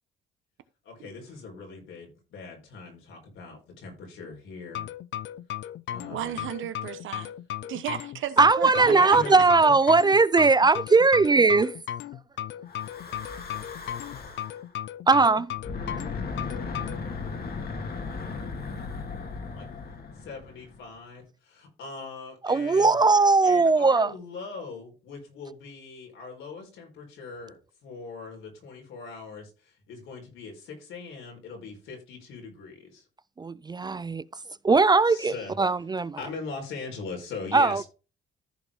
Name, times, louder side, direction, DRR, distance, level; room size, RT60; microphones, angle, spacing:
voice 1, 0.8-4.9 5.9-6.4 8.8-9.5 19.5-19.7 20.2-23.0 23.4-27.5 27.8-33.0 35.1-35.6 36.2-37.9, left 4 dB, 85° left, 4.2 m, -40 dB
sound 1, 4.8-17.0, left 11 dB, 70° left, 0.5 m, -36 dB
voice 2, 6.1-7.3 7.7-9.2, right 11 dB, 80° right, 1.1 m, -34 dB
voice 3, 8.4-11.7 15.1-15.5 22.4-24.1 33.4-34.2 34.6-36.2 37.5-37.8, right 4 dB, 20° right, 0.3 m, -19 dB
Breathing / Wind, 12.7-14.6 15.5-20.9, left 4 dB, 50° left, 1.9 m, -36 dB
14.0 x 4.8 x 3.6 m
cardioid pair, 90°, 20 cm